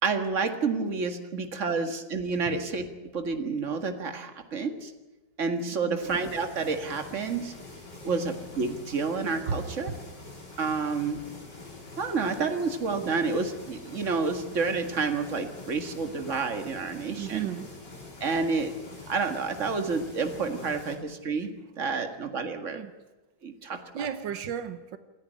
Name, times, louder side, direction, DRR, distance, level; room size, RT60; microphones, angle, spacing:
voice 1, 0.0-2.9 3.1-4.9 5.4-7.5 8.0-9.9 10.6-11.2 12.0-17.5 18.2-18.7 19.1-21.5 21.8-22.8 23.4-23.8, right 4 dB, 40° right, 6 dB, 2.1 m, -29 dB
voice 2, 5.6-6.0 8.0-8.1 9.5-9.6 9.9-10.0 17.2-17.7 22.7-22.9 23.7-25.0, right 7 dB, 85° right, 11 dB, 1.7 m, -35 dB
sound 1, 6.0-21.0, left 3 dB, 70° left, 5.1 m, -45 dB
27.5 x 11.0 x 9.8 m, 1.1 s
omnidirectional pair, 2.0 m